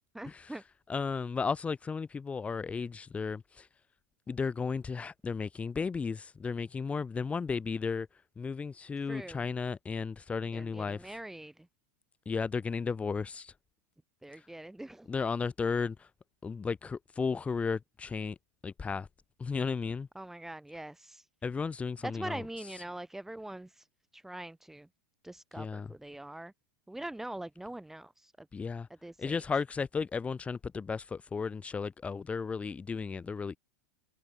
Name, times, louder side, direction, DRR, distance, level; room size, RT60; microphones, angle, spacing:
voice 1, 0.1-0.6 9.1-9.4 10.5-11.7 14.2-15.1 20.2-21.3 22.0-23.9 24.1-24.9 25.2-26.5 26.9-28.5 29.0-29.4, right 1 dB, 5° right, 5.2 m, -43 dB
voice 2, 0.9-3.7 4.3-8.1 8.4-11.1 12.3-13.5 15.1-16.1 16.4-18.4 18.6-19.1 19.4-20.1 21.4-22.4 25.6-25.9 28.5-28.9 29.2-33.6, left 5 dB, 10° left, 1.9 m, -34 dB
supercardioid pair, 155°, 10 cm